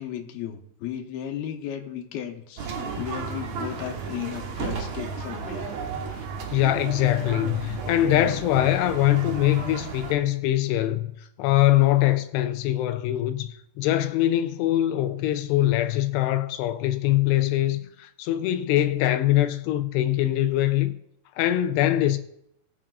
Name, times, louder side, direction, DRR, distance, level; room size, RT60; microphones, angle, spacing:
voice 1, 0.0-5.7 6.1-6.3 17.8-17.9, left 10 dB, 70° left, 2.9 m, -35 dB
sound 1, 2.6-10.1, right 5 dB, 65° right, 1.8 m, -33 dB
voice 2, 6.5-11.1 11.4-20.9 21.4-22.2, left 14 dB, 90° left, 2.7 m, -23 dB
21.0 x 7.4 x 2.4 m
omnidirectional pair, 4.7 m